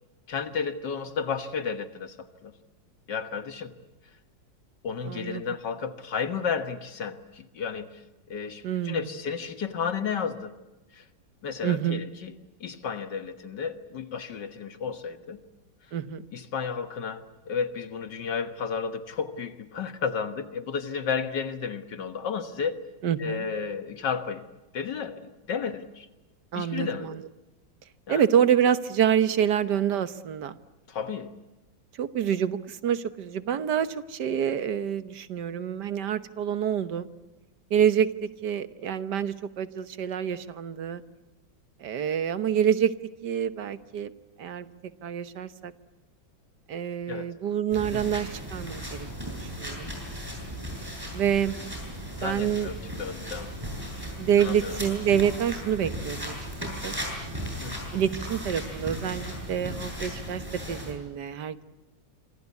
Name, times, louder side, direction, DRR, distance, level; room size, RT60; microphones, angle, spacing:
voice 1, 0.3-2.5 3.1-3.7 4.8-8.0 8.3-10.5 10.9-11.1 11.4-12.4 12.6-15.4 16.3-22.8 23.2-24.5 24.7-26.1 26.6-27.2 28.1-28.2 30.9-31.3 47.1-47.3 47.9-48.1 52.2-53.5 54.4-54.8 57.6-57.9, left 6 dB, 70° left, 10 dB, 2.0 m, -32 dB
voice 2, 5.1-5.4 8.6-9.1 11.6-12.0 15.9-16.2 23.0-23.5 26.5-27.2 28.1-30.6 32.0-37.1 37.7-41.0 41.8-42.9 43.2-44.1 44.4-44.7 45.0-45.7 46.7-49.9 51.1-51.5 52.2-52.7 54.2-56.3 56.6-57.0 57.9-60.4 60.7-61.6, right 9 dB, 65° right, 13 dB, 1.7 m, -27 dB
sound 1, 47.7-60.9, equal, 10° right, 7.9 m, -36 dB
26.5 x 25.5 x 8.3 m, 1.0 s
omnidirectional pair, 2.0 m